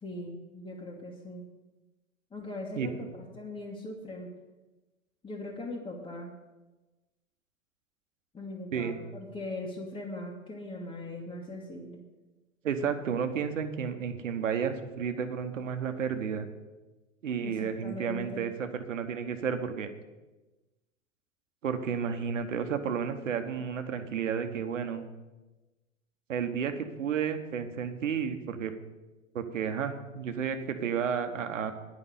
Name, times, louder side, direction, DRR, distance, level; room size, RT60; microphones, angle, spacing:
voice 1, 0.0-1.4 2.3-4.3 5.2-6.3 8.3-12.0 17.4-18.5, left 2 dB, 15° left, -3 dB, 1.5 m, -40 dB
voice 2, 2.8-3.1 8.7-9.0 12.6-16.5 17.2-19.9 21.6-25.0 26.3-28.7 29.3-31.7, right 7 dB, 70° right, 8 dB, 1.2 m, -32 dB
10.5 x 5.4 x 8.4 m, 1.1 s
figure-of-eight pair, 95°, 39 cm